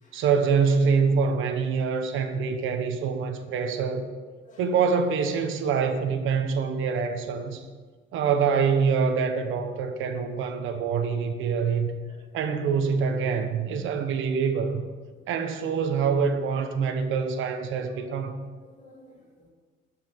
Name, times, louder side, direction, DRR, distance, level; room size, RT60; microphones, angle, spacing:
voice 1, 0.1-4.0 4.6-7.6 8.1-11.9 12.3-14.8 15.3-18.4, right 5 dB, 75° right, 6 dB, 1.3 m, -25 dB
voice 2, 12.0-12.7 17.7-18.2 18.6-19.5, left 1 dB, 40° left, 0 dB, 2.3 m, -55 dB
12.0 x 6.0 x 7.4 m, 1.4 s
cardioid pair, 150°, 20 cm